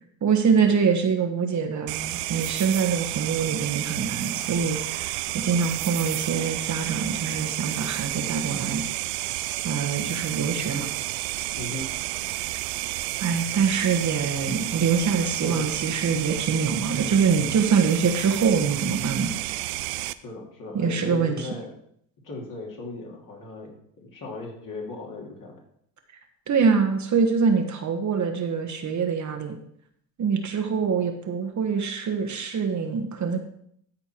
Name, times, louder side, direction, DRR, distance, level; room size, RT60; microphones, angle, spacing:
voice 1, 0.2-8.8 9.6-10.9 13.2-19.3 20.7-21.5 26.5-29.6 30.2-33.4, right 6 dB, 40° right, 4 dB, 1.4 m, -24 dB
sound 1, 1.9-20.1, right 17 dB, 85° right, 0.5 m, -31 dB
voice 2, 11.6-11.9 15.4-15.7 20.2-21.7 22.2-25.6, left 2 dB, 45° left, -1 dB, 3.2 m, -37 dB
13.0 x 4.4 x 4.5 m, 0.68 s
supercardioid pair, 80°, 43 cm